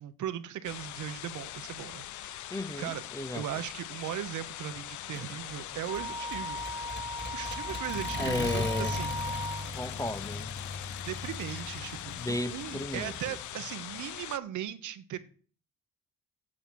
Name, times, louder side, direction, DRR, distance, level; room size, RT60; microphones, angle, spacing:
voice 1, 0.0-2.5 2.8-3.0 3.3-6.6 7.3-9.2 11.1-12.0 12.3-15.2, right 11 dB, 75° right, 1.1 m, -38 dB
sound 1, 0.6-14.4, left 14 dB, 70° left, 0.6 m, -42 dB
voice 2, 2.5-3.5 8.2-8.9 9.7-10.5 12.2-13.4, left 2 dB, 10° left, 0.6 m, -34 dB
Accelerating revving vroom, 5.1-13.4, left 2 dB, 35° left, 2.2 m, -39 dB
Wind instrument woodwind instrument, 5.9-9.7, equal, 15° right, 1.4 m, -37 dB
8.7 x 7.9 x 6.4 m
cardioid pair, 90°, 30 cm